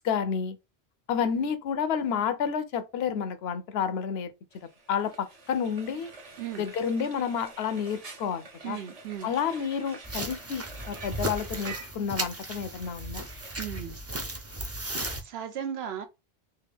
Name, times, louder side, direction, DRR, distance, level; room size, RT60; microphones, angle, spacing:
voice 1, 0.0-0.6 1.1-4.3 4.9-5.1 5.5-6.1 6.6-8.8 9.2-13.3, left 7 dB, 75° left, 0.8 m, -30 dB
Frying (food), 4.5-13.7, right 3 dB, 40° right, 0.7 m, -47 dB
voice 2, 8.6-9.3 13.6-14.0 15.2-16.1, right 9 dB, 75° right, 0.9 m, -36 dB
sound 1, 10.0-15.2, right 1 dB, 20° right, 0.4 m, -35 dB
3.4 x 2.5 x 3.4 m
omnidirectional pair, 1.1 m